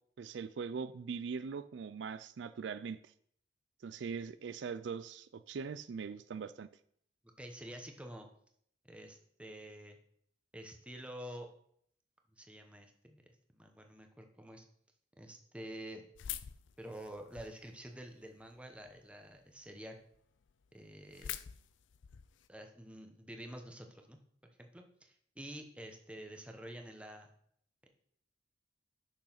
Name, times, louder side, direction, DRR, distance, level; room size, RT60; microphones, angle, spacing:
voice 1, 0.2-3.0 3.8-6.7, right 5 dB, 70° right, 13 dB, 0.4 m, -41 dB
voice 2, 7.4-8.3 8.8-10.0 10.5-11.5 12.3-14.7 15.2-16.1 16.8-20.0 20.7-21.4 22.5-27.3, right 1 dB, 5° right, 4 dB, 0.9 m, -49 dB
sound 1, 16.1-17.7 18.2-18.9 19.4-19.5 19.7-19.8 20.1-20.2 20.4-22.5, left 11 dB, 75° left, 0.4 m, -45 dB
6.4 x 6.3 x 5.8 m, 0.66 s
head